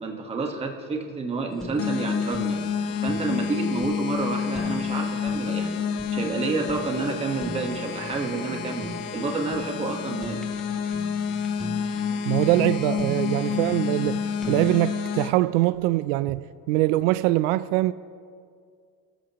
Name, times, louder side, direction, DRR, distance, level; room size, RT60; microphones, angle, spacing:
voice 1, 0.0-2.6 3.0-5.8 6.1-8.9 9.1-10.4, right 3 dB, 15° right, 1.3 m, -29 dB
Fire, 1.5-14.8, equal, ahead, 0.3 m, -40 dB
sound 1, 1.8-15.3, left 7 dB, 80° left, 1.1 m, -29 dB
voice 2, 12.3-17.9, right 16 dB, 75° right, 0.5 m, -23 dB
30.0 x 14.0 x 3.0 m
cardioid pair, 175°, 38 cm